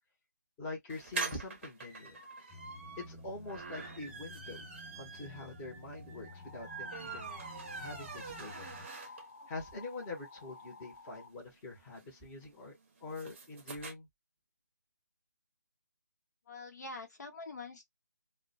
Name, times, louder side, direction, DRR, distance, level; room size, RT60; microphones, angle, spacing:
voice 1, 0.6-2.2 3.0-4.6 4.9-7.3 7.7-8.6 9.1-9.2 9.5-12.7 13.0-14.1, left 2 dB, 10° left, 0.9 m, -44 dB
sound 1, 0.9-9.5 9.9-10.0 10.2-10.3 10.5-13.9, right 4 dB, 40° right, 0.7 m, -44 dB
sound 2, 2.5-8.9, left 1 dB, 5° right, 0.3 m, -52 dB
sound 3, 6.3-11.3, left 3 dB, 45° left, 0.6 m, -53 dB
voice 2, 16.5-17.9, left 3 dB, 60° left, 1.0 m, -45 dB
2.2 x 2.1 x 2.7 m
figure-of-eight pair, 165°, 10 cm